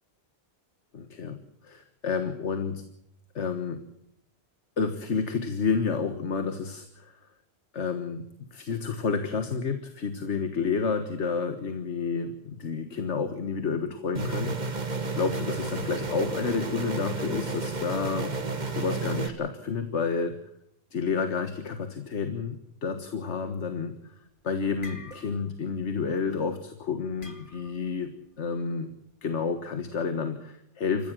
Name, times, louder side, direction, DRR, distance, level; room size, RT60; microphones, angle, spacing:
voice 1, 0.9-1.4 1.6-2.7 3.3-3.8 4.8-7.1 7.7-8.2 8.5-14.8 15.1-18.3 18.7-20.3 20.9-23.9 24.4-28.1 28.4-28.9 29.2-31.1, left 5 dB, 85° left, 8 dB, 1.7 m, -30 dB
sound 1, 14.1-19.3, right 3 dB, 40° right, 1.5 m, -32 dB
sound 2, 24.8-26.2 27.2-27.9, left 2 dB, 50° left, 2.3 m, -46 dB
26.5 x 15.0 x 7.6 m, 0.76 s
omnidirectional pair, 1.2 m